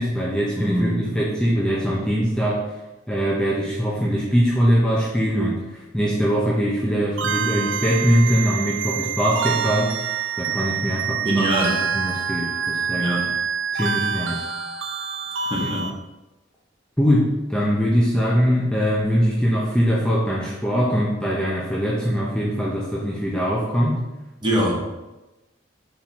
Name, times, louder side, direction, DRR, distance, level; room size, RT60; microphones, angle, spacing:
voice 1, 0.0-2.6 3.1-10.1 10.4-11.6 11.9-13.2 13.7-14.4 15.8-15.9 17.0-24.0, equal, 5° left, -6 dB, 0.7 m, -22 dB
voice 2, 0.5-1.2 11.2-11.8 13.0-13.3 15.5-15.9 24.4-24.8, right 1 dB, 25° right, -3 dB, 1.2 m, -23 dB
sound 1, 7.2-15.9, right 7 dB, 75° right, 0.5 m, -27 dB
4.5 x 3.8 x 5.5 m, 1.0 s
head